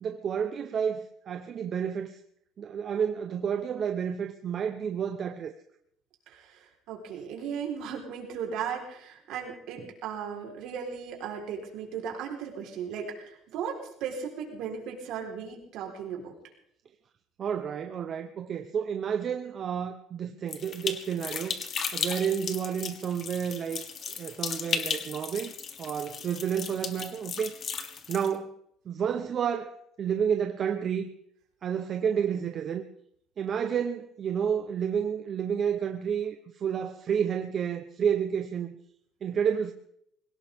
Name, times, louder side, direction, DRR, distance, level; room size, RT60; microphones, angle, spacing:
voice 1, 0.0-2.2 2.6-5.5 17.4-21.6 21.9-23.8 24.1-25.5 25.8-27.5 28.1-28.6 28.9-31.1 31.6-32.9 33.4-38.8 39.2-39.7, right 7 dB, 35° right, 0.9 m, -30 dB
voice 2, 6.3-16.3, right 7 dB, 65° right, 4.1 m, -36 dB
sound 1, 20.5-28.3, left 6 dB, 35° left, 1.4 m, -35 dB
22.0 x 18.0 x 3.6 m
cardioid pair, 170°, 0 cm